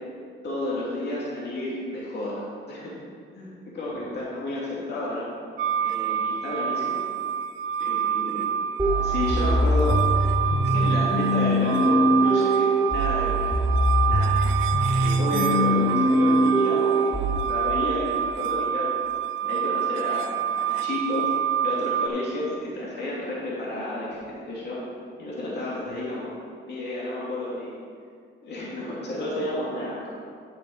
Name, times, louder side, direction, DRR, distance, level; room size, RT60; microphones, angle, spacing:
voice 1, 0.4-2.9 3.3-5.3 5.8-7.0 7.8-8.5 9.0-10.0 10.7-13.5 14.1-14.3 14.9-18.9 19.4-21.3 21.6-24.8 25.2-26.3 26.6-27.8 28.4-30.1, left 1 dB, 60° left, -6 dB, 2.4 m, -31 dB
sound 1, 5.6-22.1, right 9 dB, 85° right, 0.6 m, -27 dB
sound 2, 8.8-17.4, equal, 10° right, 2.4 m, -22 dB
9.9 x 6.1 x 4.8 m, 2.1 s
cardioid pair, 90°, 20 cm